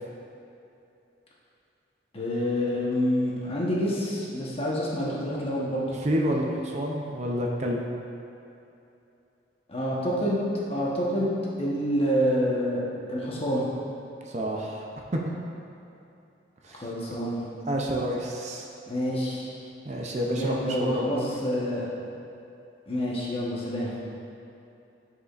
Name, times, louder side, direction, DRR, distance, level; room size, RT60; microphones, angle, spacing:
voice 1, 2.1-5.8 9.7-12.8 13.1-13.6 16.8-17.4 18.9-19.5 20.3-21.8 22.9-23.9, equal, 35° left, -6 dB, 1.1 m, -27 dB
voice 2, 5.9-7.8 14.3-14.9 15.3-15.4 16.7-16.9 17.7-18.6 19.8-21.2, equal, 40° right, -1 dB, 0.6 m, -29 dB
9.5 x 4.9 x 2.5 m, 2.8 s
head